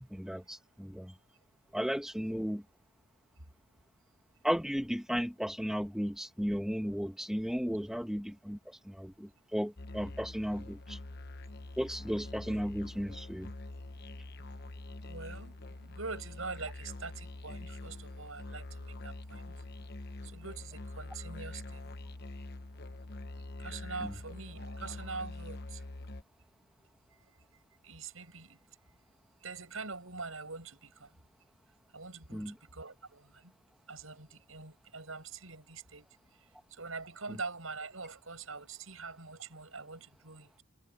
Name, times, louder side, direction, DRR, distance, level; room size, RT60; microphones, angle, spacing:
voice 1, 0.1-1.1 1.7-2.6 4.4-11.0 11.8-13.5 32.3-32.5, equal, ahead, 1.4 m, -35 dB
Musical instrument, 9.8-26.2, left 2 dB, 50° left, 1.0 m, -45 dB
voice 2, 15.0-19.6 20.2-21.9 23.6-25.8 27.8-28.6 29.4-31.1 31.9-33.5 33.9-36.1 36.7-40.5, right 4 dB, 75° right, 7.1 m, -44 dB
head